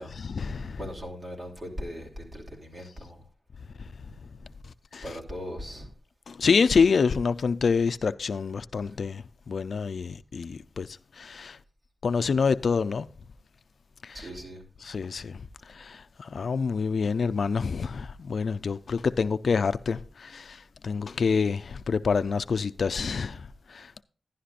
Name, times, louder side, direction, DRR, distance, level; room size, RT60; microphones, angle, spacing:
voice 1, 0.2-0.8 4.9-5.2 6.3-10.9 11.2-11.6 12.0-13.1 14.0-14.3 14.8-15.4 15.7-20.6 20.8-24.0, left 5 dB, 75° left, 0.4 m, -27 dB
voice 2, 0.8-3.2 5.0-5.9 14.1-14.6, equal, 45° right, 2.8 m, -39 dB
11.5 x 11.0 x 2.4 m
wide cardioid pair, 120°, 0 cm